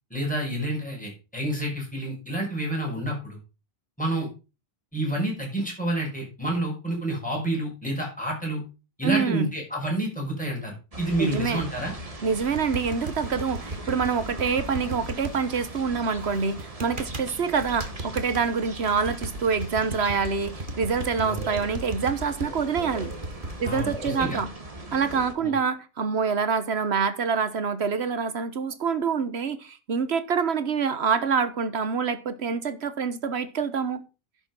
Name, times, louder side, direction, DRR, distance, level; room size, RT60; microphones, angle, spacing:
voice 1, 0.1-3.4 4.0-4.3 4.9-8.6 9.0-11.9 21.2-21.4 23.6-24.4 25.4-25.5, right 1 dB, 5° left, 6.4 m, -29 dB
voice 2, 9.0-9.5 11.2-11.6 12.2-23.1 23.6-24.5 24.9-34.0, right 5 dB, 80° right, 1.5 m, -26 dB
sound 1, 10.9-25.3, right 1 dB, 35° right, 1.9 m, -40 dB
sound 2, 12.4-15.3 16.6-17.3 17.6-18.4 18.9-24.3, right 2 dB, 55° right, 1.9 m, -36 dB
11.0 x 7.2 x 5.5 m
omnidirectional pair, 1.1 m